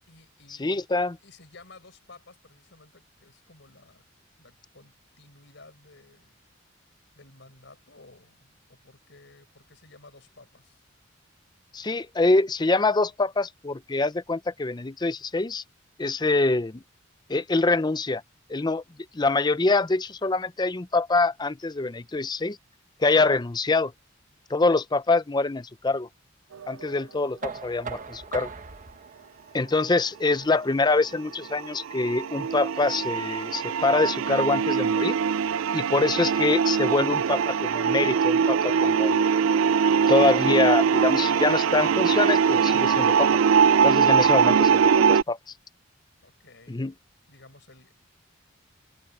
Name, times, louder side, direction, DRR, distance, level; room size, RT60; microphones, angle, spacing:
voice 1, 0.1-0.9 1.2-4.0 4.4-6.4 7.1-10.8 46.2-46.9 47.3-47.9, left 3 dB, 60° left, 6.0 m, -53 dB
voice 2, 0.6-1.1 11.7-15.6 16.0-16.8 17.3-18.2 18.5-18.8 19.1-22.6 23.0-23.9 24.5-26.1 26.7-28.5 29.5-35.2 35.7-39.3 40.1-43.3 43.8-45.4 46.7-46.9, left 3 dB, 20° left, 0.5 m, -24 dB
sound 1, 26.5-26.8 31.4-45.2, right 6 dB, 80° right, 0.4 m, -22 dB
Knock, 27.4-33.2, right 5 dB, 40° right, 1.4 m, -42 dB
head